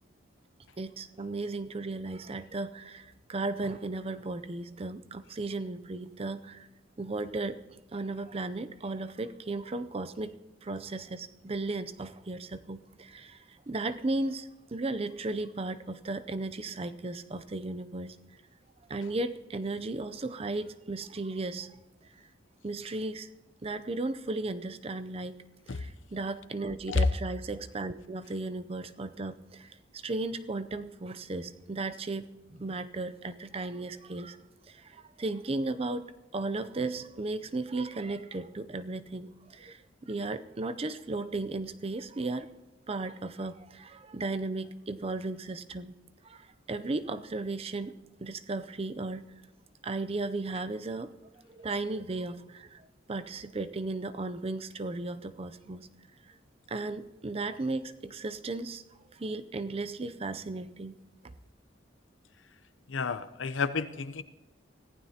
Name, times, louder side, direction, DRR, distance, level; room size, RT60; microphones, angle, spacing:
voice 1, 0.8-6.7 7.0-7.6 7.9-10.3 10.6-18.2 18.9-21.7 22.6-23.3 23.6-25.3 25.7-34.4 34.7-36.1 36.3-42.5 42.9-45.9 46.2-47.9 48.2-49.2 49.8-51.1 51.5-55.9 56.3-56.4 56.7-58.8 59.1-61.0, right 2 dB, 30° right, 12 dB, 0.5 m, -35 dB
voice 2, 62.9-64.2, left 4 dB, 85° left, 12 dB, 0.7 m, -30 dB
24.0 x 15.0 x 2.9 m, 1.0 s
head